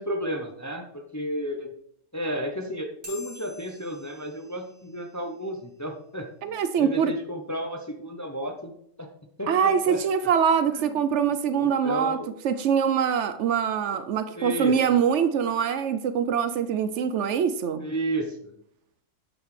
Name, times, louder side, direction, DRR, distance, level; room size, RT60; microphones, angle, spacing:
voice 1, 0.0-1.7 2.1-8.7 9.0-9.1 9.4-10.0 10.7-11.0 11.5-12.3 14.3-15.0 17.8-18.5, equal, 20° left, 3 dB, 0.5 m, -32 dB
sound 1, 3.0-5.9, left 2 dB, 45° right, 2.8 m, -48 dB
voice 2, 6.4-7.1 9.5-12.2 12.4-17.9, right 7 dB, 70° right, 11 dB, 0.9 m, -24 dB
8.7 x 7.0 x 3.2 m, 0.71 s
omnidirectional pair, 1.3 m